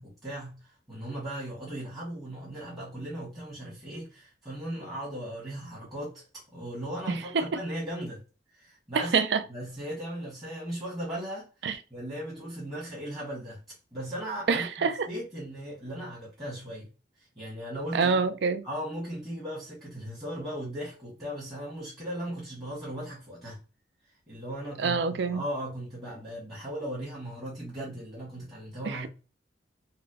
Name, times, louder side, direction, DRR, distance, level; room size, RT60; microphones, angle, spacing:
voice 1, 0.0-6.2 6.5-8.2 8.5-9.1 9.5-13.6 13.9-16.9 17.2-18.2 18.6-23.6 24.3-29.1, equal, 20° right, 1.3 m, -37 dB
voice 2, 7.1-7.6 8.9-9.4 11.6-11.8 14.5-15.1 17.9-18.6 24.8-25.4 28.8-29.1, right 5 dB, 70° right, 0.4 m, -26 dB
4.0 x 2.1 x 2.7 m
head